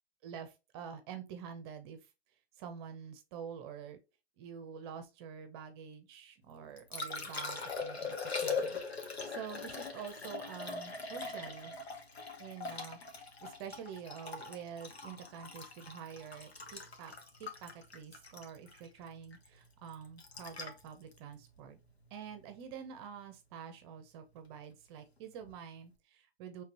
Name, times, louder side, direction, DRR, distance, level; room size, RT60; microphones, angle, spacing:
voice 1, 0.2-2.1 2.6-4.0 4.4-11.8 12.4-13.0 13.4-17.1 17.4-21.8 22.1-26.6, right 7 dB, 25° right, 0.7 m, -47 dB
Liquid, 6.5-22.6 25.4-25.5, left 4 dB, 85° left, 1.3 m, -42 dB
5.2 x 3.4 x 2.9 m
hypercardioid pair, 130°, 31 cm